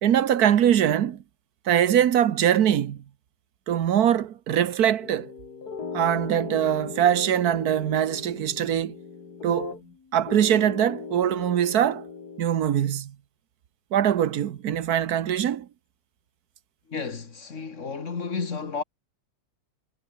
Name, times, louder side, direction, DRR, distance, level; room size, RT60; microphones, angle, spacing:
voice 1, 0.0-1.2 1.7-3.0 3.7-5.3 5.9-8.9 9.4-9.8 10.1-12.0 12.4-13.1 13.9-15.7, right 10 dB, 80° right, 1.5 m, -22 dB
sound 1, 5.0-10.0 10.3-12.4, left 5 dB, 85° left, 3.0 m, -38 dB
voice 2, 16.9-18.8, left 5 dB, 50° left, 2.2 m, -32 dB
omnidirectional pair, 1.6 m